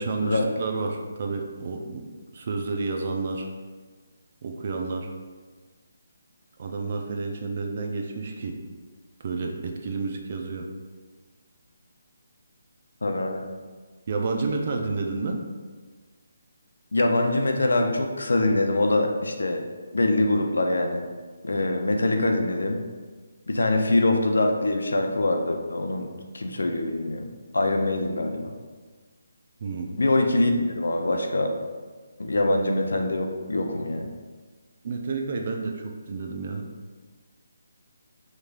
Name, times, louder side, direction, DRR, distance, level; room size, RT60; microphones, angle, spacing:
voice 1, 0.0-2.0 2.3-3.5 4.4-5.1 6.6-8.5 9.2-10.7 14.1-15.4 29.6-29.9 34.8-36.6, right 3 dB, 45° right, 2 dB, 0.5 m, -30 dB
voice 2, 13.0-13.5 16.9-19.6 19.9-21.1 21.4-22.8 23.5-28.5 30.0-31.5 32.2-34.1, left 2 dB, 85° left, 3 dB, 0.5 m, -24 dB
5.1 x 3.2 x 2.5 m, 1.4 s
figure-of-eight pair, 155°, 0 cm